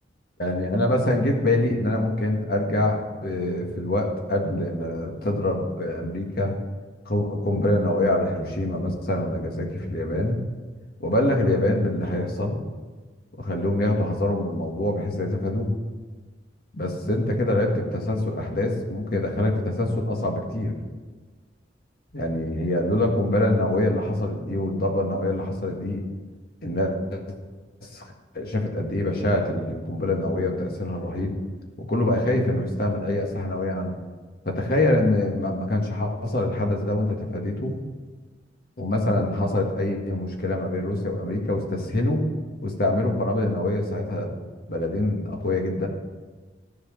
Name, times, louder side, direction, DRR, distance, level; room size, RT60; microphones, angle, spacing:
voice 1, 0.4-6.5 7.0-10.4 11.0-12.6 13.4-15.7 16.7-20.7 22.1-26.0 26.6-27.3 27.8-31.3 31.8-33.9 34.4-37.8 38.8-42.2 42.6-44.3 44.7-45.9, left 1 dB, 55° left, 1 dB, 1.7 m, -25 dB
14.0 x 4.8 x 7.4 m, 1.3 s
head